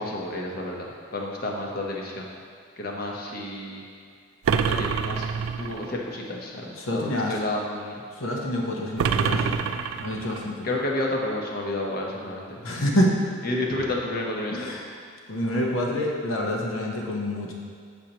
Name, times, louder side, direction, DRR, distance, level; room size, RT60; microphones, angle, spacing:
voice 1, 0.0-2.3 2.8-3.8 4.6-5.3 5.6-8.0 10.6-12.6 13.4-14.7, left 1 dB, 50° left, -1 dB, 0.9 m, -30 dB
sound 1, 4.4-5.9 9.0-10.5, right 6 dB, 85° right, 0.3 m, -26 dB
voice 2, 6.8-7.4 8.2-10.6 12.6-13.2 14.5-15.0 15.3-17.5, equal, 85° left, -1 dB, 0.9 m, -27 dB
6.9 x 6.3 x 2.9 m, 2.2 s
head